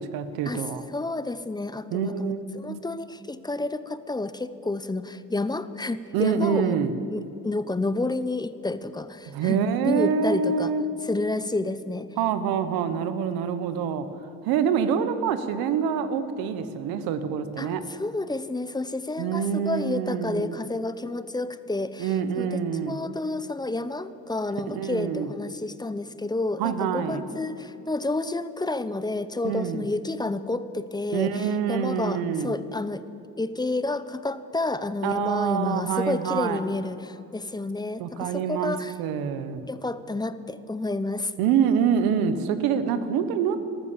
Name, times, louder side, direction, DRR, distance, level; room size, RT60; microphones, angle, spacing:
voice 1, 0.0-0.8 1.9-2.8 6.1-6.9 9.3-10.8 12.2-14.1 14.4-17.8 19.2-20.5 22.0-23.0 24.7-25.3 26.6-27.2 29.4-29.8 31.1-32.5 35.0-36.6 38.0-39.7 41.4-43.6, right 7 dB, 90° right, 11 dB, 1.1 m, -26 dB
voice 2, 0.9-6.8 7.1-9.6 9.8-10.7 11.0-12.1 17.6-22.6 22.9-33.0 33.4-38.9 39.7-41.3, left 2 dB, 10° left, 13 dB, 0.7 m, -30 dB
13.5 x 13.0 x 7.4 m, 2.9 s
cardioid pair, 85°, 35 cm